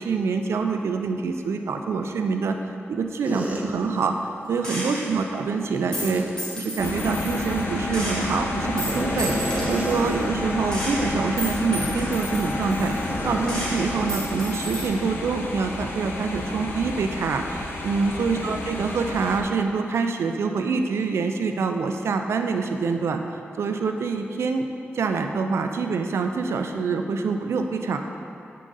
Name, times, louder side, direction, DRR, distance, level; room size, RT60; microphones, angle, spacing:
voice 1, 0.0-2.6 2.9-4.1 4.5-6.2 6.6-9.3 9.7-12.9 13.2-23.2 23.6-24.6 24.9-28.0, right 4 dB, 85° right, 5 dB, 0.4 m, -25 dB
sound 1, 3.2-3.6 5.7-6.4 8.8-10.6 10.9-11.1 11.7-11.8 13.1-14.9, right 1 dB, 35° right, 0.6 m, -32 dB
Gunshot gunfire, 4.6-5.3 5.9-7.6 7.9-10.2 10.7-13.2 13.5-14.8, equal, 20° left, 1.5 m, -33 dB
sound 2, 6.8-19.4, left 2 dB, 60° left, 0.6 m, -30 dB
7.7 x 3.7 x 3.9 m, 2.7 s
wide cardioid pair, 170°, 4 cm